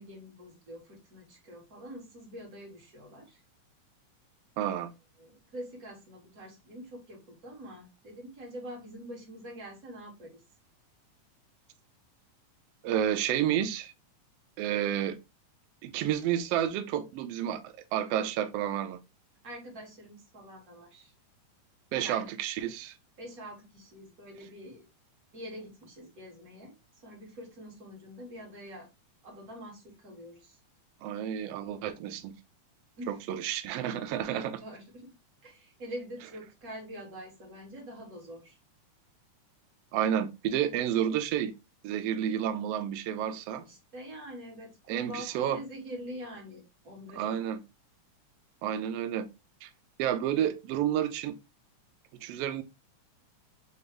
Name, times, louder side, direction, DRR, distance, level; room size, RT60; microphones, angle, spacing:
voice 1, 0.0-3.4 5.2-10.3 19.4-21.1 22.0-22.3 23.2-24.9 25.3-26.8 27.0-28.9 29.2-30.6 33.0-33.2 34.3-35.1 35.4-38.6 43.6-47.4, equal, 35° right, 1.6 m, -45 dB
voice 2, 4.6-4.9 12.8-13.9 14.6-15.2 15.8-19.0 21.9-22.9 31.0-32.3 33.1-34.6 39.9-41.5 41.8-43.6 44.9-45.6 47.2-47.6 48.6-49.3 49.6-49.7 50.0-51.3 52.2-52.6, right 10 dB, 85° right, 1.4 m, -30 dB
5.5 x 2.5 x 3.3 m
omnidirectional pair, 3.5 m